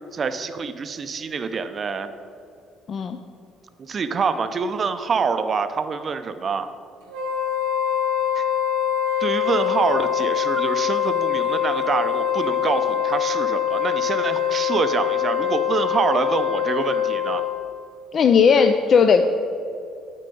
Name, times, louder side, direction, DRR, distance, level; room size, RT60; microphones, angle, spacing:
voice 1, 0.1-2.1 3.8-6.7 8.4-8.5 9.2-17.4, right 5 dB, 40° right, 10 dB, 0.5 m, -26 dB
Wind instrument woodwind instrument, 7.1-17.7, left 9 dB, 90° right, 1.1 m, -23 dB
voice 2, 18.1-19.3, left 6 dB, 50° left, 6 dB, 0.4 m, -16 dB
9.2 x 4.5 x 5.3 m, 2.6 s
cardioid pair, 100°, 0 cm